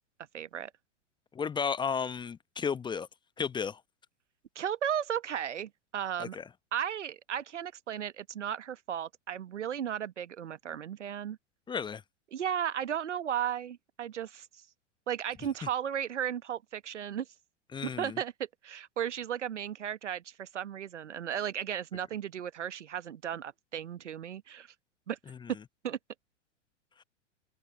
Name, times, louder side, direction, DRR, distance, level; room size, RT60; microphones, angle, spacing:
voice 1, 0.3-0.7 4.5-6.4 6.7-11.4 12.3-14.6 15.1-17.3 17.8-18.3 18.6-24.7 25.1-25.2 25.8-26.0, right 9 dB, 70° right, 1.1 m, -35 dB
voice 2, 1.3-3.1 3.4-3.8 6.2-6.4 11.7-12.0 17.7-18.2, left 6 dB, 10° left, 1.0 m, -33 dB
open air
figure-of-eight pair, 100°, 37 cm